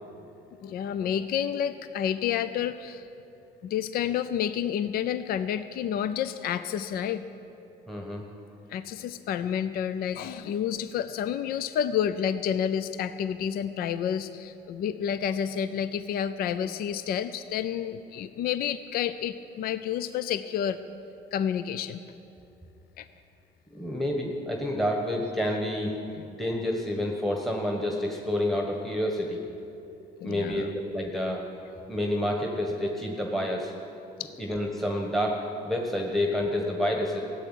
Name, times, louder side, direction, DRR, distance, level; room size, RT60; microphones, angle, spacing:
voice 1, 0.6-3.1 3.6-7.2 8.7-20.8 21.3-22.0 23.0-23.1 26.2-26.3 30.2-30.7 34.2-34.3, left 9 dB, 60° left, 12 dB, 0.5 m, -29 dB
voice 2, 7.9-8.2 23.7-25.9 26.3-29.4 30.2-31.4 31.9-33.7 34.4-37.2, left 1 dB, ahead, 1 dB, 1.4 m, -29 dB
15.0 x 8.1 x 10.0 m, 2.9 s
cardioid pair, 110°, 17 cm